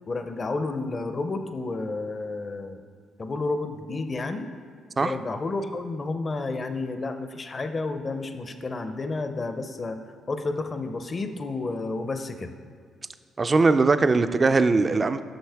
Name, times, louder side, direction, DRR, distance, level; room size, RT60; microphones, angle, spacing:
voice 1, 0.1-2.8 3.2-4.5 5.0-10.0 10.3-12.5, left 3 dB, 35° left, 8 dB, 0.5 m, -31 dB
voice 2, 13.4-15.2, right 3 dB, 30° right, 10 dB, 0.3 m, -20 dB
7.9 x 6.2 x 3.4 m, 2.1 s
cardioid pair, 90°, 0 cm